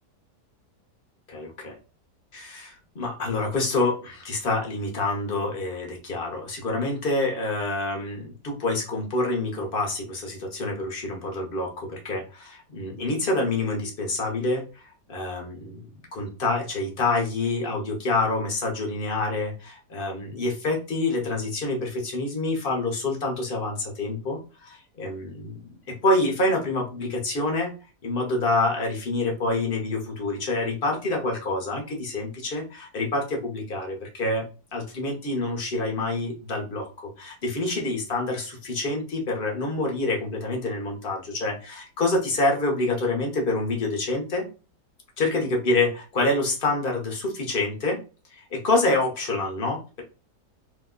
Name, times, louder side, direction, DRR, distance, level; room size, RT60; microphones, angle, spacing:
voice 1, 1.3-1.8 2.3-27.7 28.0-34.4 34.7-36.9 37.2-44.5 45.2-48.0 48.3-50.0, left 2 dB, 50° left, 1 dB, 0.7 m, -27 dB
2.9 x 2.1 x 3.6 m, 0.33 s
omnidirectional pair, 1.8 m